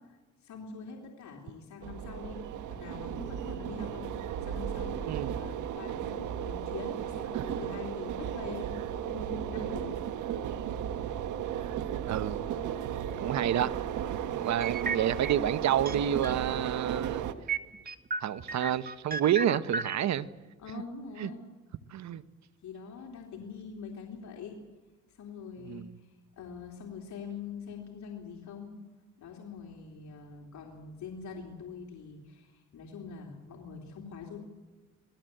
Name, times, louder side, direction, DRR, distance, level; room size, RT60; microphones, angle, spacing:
voice 1, 0.1-2.4 2.7-4.1 4.4-10.0 20.6-21.4 22.6-24.6 25.2-28.8 29.2-34.4, left 5 dB, 70° left, 3.4 m, -44 dB
sound 1, 1.8-17.3, right 10 dB, 80° right, 1.5 m, -35 dB
voice 2, 5.1-5.4 7.4-7.5 12.1-12.5 13.2-13.7 14.3-17.2 18.2-20.3 21.2-21.3 21.9-22.2 25.6-25.9, right 10 dB, 65° right, 1.1 m, -29 dB
sound 2, 14.6-15.6 15.8-16.6 16.9-17.0 17.5-19.9, right 4 dB, 30° right, 1.3 m, -34 dB
26.5 x 18.0 x 7.9 m
cardioid pair, 90°, 30 cm